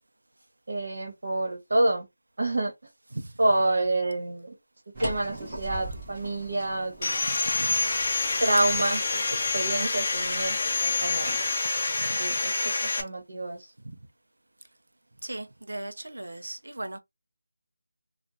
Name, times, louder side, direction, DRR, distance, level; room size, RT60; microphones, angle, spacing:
voice 1, 0.7-2.1 2.4-2.7 3.4-4.5 5.0-7.2 8.4-9.3 9.5-11.3 12.2-13.7, right 2 dB, 55° right, 1.5 m, -28 dB
sound 1, 4.9-11.6, right 2 dB, 15° right, 1.3 m, -41 dB
Sawing, 7.0-13.0, left 3 dB, 25° left, 0.5 m, -27 dB
voice 2, 7.3-7.9 11.9-12.4 13.8-14.0 15.2-17.0, right 2 dB, 90° right, 0.6 m, -38 dB
3.3 x 2.4 x 2.8 m
figure-of-eight pair, 175°, 0 cm